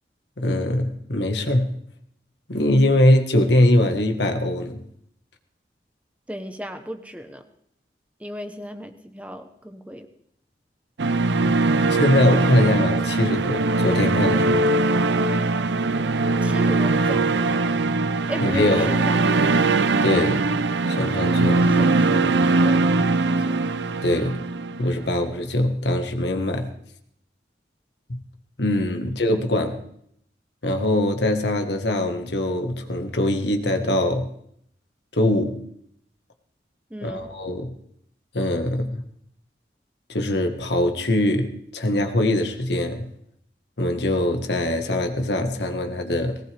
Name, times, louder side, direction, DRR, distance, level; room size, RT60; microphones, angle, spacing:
voice 1, 0.4-1.8 2.5-4.8 11.4-11.5 11.9-14.6 18.4-18.9 20.0-20.5 20.9-21.7 24.0-24.4 24.8-26.7 28.1-28.2 28.6-29.8 30.6-34.3 35.1-35.6 37.0-37.7 38.3-39.0 40.1-43.1 43.8-46.4, left 1 dB, 80° left, 5 dB, 1.6 m, -22 dB
voice 2, 6.3-7.4 8.2-10.1 16.4-18.0 18.3-19.5 21.6-23.6 29.0-29.1 36.9-37.3, equal, 10° right, 6 dB, 1.0 m, -35 dB
sound 1, 11.0-25.1, right 3 dB, 90° right, 0.7 m, -21 dB
19.5 x 18.0 x 3.5 m, 0.70 s
head